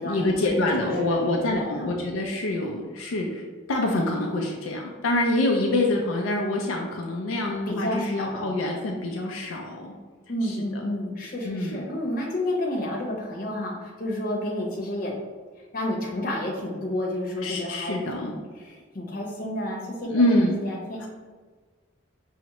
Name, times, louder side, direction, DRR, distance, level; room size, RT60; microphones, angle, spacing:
voice 1, 0.0-10.0 10.4-10.8 11.4-11.9 17.4-18.3 20.0-20.6 21.0-21.1, left 1 dB, 80° left, 0 dB, 0.4 m, -26 dB
voice 2, 0.6-1.9 7.7-8.5 10.3-15.1 15.7-21.1, left 1 dB, 45° left, -3 dB, 0.8 m, -31 dB
5.5 x 2.0 x 2.9 m, 1.4 s
head